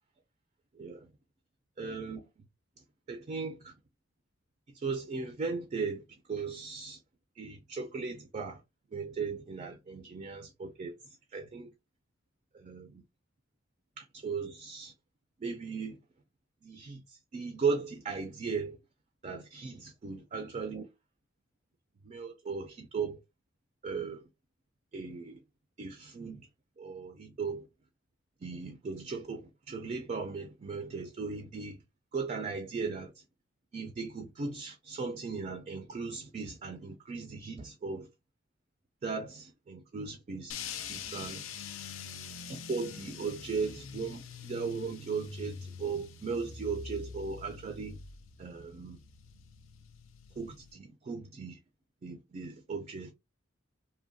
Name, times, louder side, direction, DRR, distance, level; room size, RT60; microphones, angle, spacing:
voice 1, 0.8-1.1 1.8-2.2 3.1-3.7 4.7-6.0 6.3-7.0 7.4-8.6 8.9-10.9 11.3-11.7 12.5-13.0 14.0-14.9 15.4-16.0 16.6-18.8 19.2-20.9 22.1-23.2 23.8-24.2 24.9-25.4 25.8-26.5 26.8-27.7 28.4-31.8 32.1-33.1 33.7-38.1 39.0-40.5 40.9-41.4 42.5-48.0 48.4-49.0 50.4-51.6 52.0-53.1, right 4 dB, 35° right, 0.4 m, -37 dB
sound 1, 40.5-50.7, left 6 dB, 90° left, 0.4 m, -45 dB
2.7 x 2.2 x 2.5 m
head